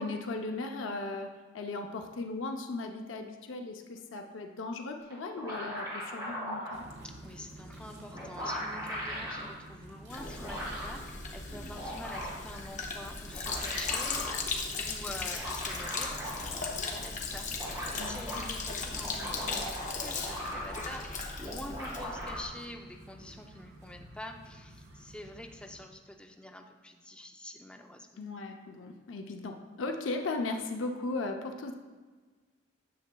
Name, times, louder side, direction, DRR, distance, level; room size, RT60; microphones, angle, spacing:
voice 1, 0.0-6.8 18.0-18.5 28.2-31.7, left 3 dB, 90° left, 4 dB, 0.6 m, -37 dB
sound 1, 5.1-6.8 7.8-7.9 8.1-9.5 10.1-11.0 11.5-12.5 13.2-14.4 15.2-16.7 17.0-17.1 17.3-18.4 18.9-21.0 21.4-22.4, equal, 20° right, 2.2 m, -39 dB
sound 2, 6.7-25.8, right 1 dB, 60° right, 1.1 m, -51 dB
voice 2, 7.0-14.4 14.8-28.1, left 1 dB, 5° left, 3 dB, 0.4 m, -47 dB
Sink (filling or washing), 10.1-22.4, left 4 dB, 40° left, 0.7 m, -37 dB
10.0 x 6.7 x 2.2 m, 1.4 s
head